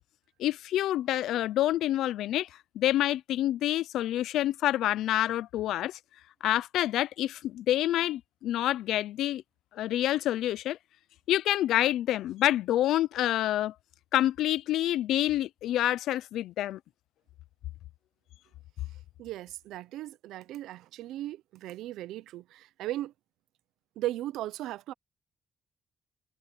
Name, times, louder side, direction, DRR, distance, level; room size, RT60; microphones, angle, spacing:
voice 1, 0.4-2.5 2.8-6.0 6.4-9.4 9.8-10.8 11.3-13.7 14.1-16.8, left 13 dB, 85° left, 0.5 m, -27 dB
voice 2, 19.2-23.1 24.0-24.9, right 14 dB, 90° right, 0.6 m, -37 dB
cardioid pair, 90°, 0 cm